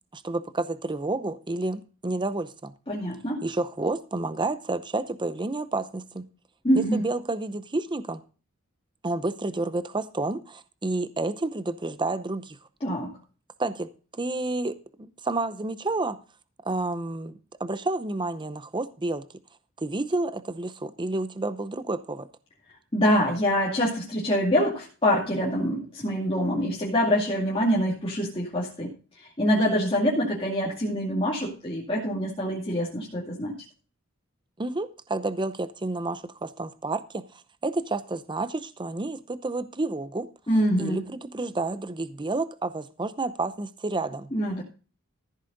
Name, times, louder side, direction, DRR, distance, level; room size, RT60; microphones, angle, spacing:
voice 1, 0.1-2.7 3.4-6.3 6.8-8.2 9.0-12.6 13.6-16.2 16.6-17.3 17.6-19.3 19.8-22.3 34.6-37.2 37.6-40.3 40.8-44.3, right 2 dB, 20° right, 0.7 m, -30 dB
voice 2, 2.9-3.4 6.6-7.0 12.8-13.1 22.9-28.9 29.4-33.5 40.5-41.0 44.3-44.6, equal, 25° left, 2.4 m, -25 dB
14.5 x 8.2 x 3.9 m
head